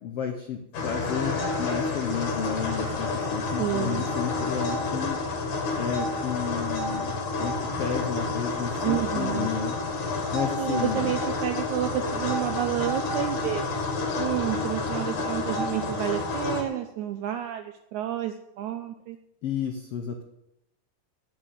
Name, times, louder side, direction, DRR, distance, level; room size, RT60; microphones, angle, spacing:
voice 1, 0.0-5.2 5.8-7.1 7.4-9.8 10.3-11.1 19.4-20.2, left 7 dB, 80° left, 4 dB, 1.3 m, -32 dB
sound 1, 0.7-16.6, left 3 dB, 60° left, 3.4 m, -29 dB
voice 2, 3.6-4.0 8.8-9.5 10.6-13.6 14.2-19.2, right 11 dB, 80° right, 8 dB, 1.7 m, -30 dB
8.9 x 8.7 x 9.1 m, 0.83 s
omnidirectional pair, 4.1 m